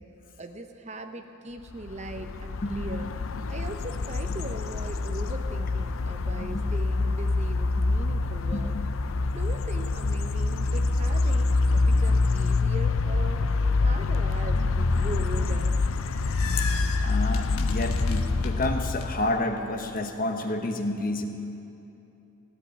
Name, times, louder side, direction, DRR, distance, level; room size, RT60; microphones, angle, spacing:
voice 1, 0.4-3.1 3.5-8.7 9.3-13.5 13.8-15.8 16.8-16.9, right 2 dB, 30° right, 7 dB, 0.8 m, -40 dB
sound 1, 1.8-19.4, left 3 dB, 65° left, 0.6 m, -26 dB
voice 2, 2.6-3.1 6.4-6.6 8.7-8.8 16.6-16.7 17.0-21.2, left 2 dB, 40° left, 5 dB, 1.1 m, -30 dB
sound 2, 15.7-19.1, left 6 dB, 85° left, 1.2 m, -38 dB
16.0 x 8.3 x 10.0 m, 2.9 s
head